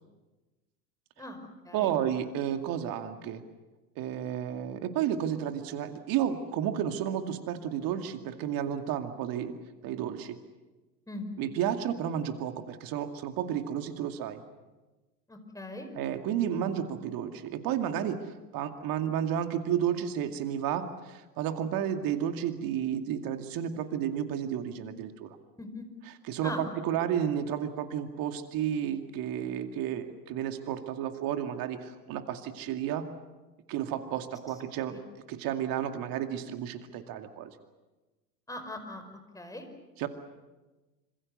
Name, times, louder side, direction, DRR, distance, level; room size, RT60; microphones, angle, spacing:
voice 1, 1.7-3.4 4.0-9.5 9.8-10.4 11.4-14.4 16.0-25.4 26.1-33.1 33.7-35.0 35.3-37.5 40.0-40.1, right 9 dB, 45° right, 7 dB, 2.4 m, -32 dB
voice 2, 15.3-15.9 25.6-25.9 26.4-26.7 34.9-35.0 38.5-39.7, left 1 dB, 5° left, 6 dB, 5.0 m, -40 dB
27.0 x 26.5 x 6.7 m, 1.1 s
hypercardioid pair, 90°, 50 cm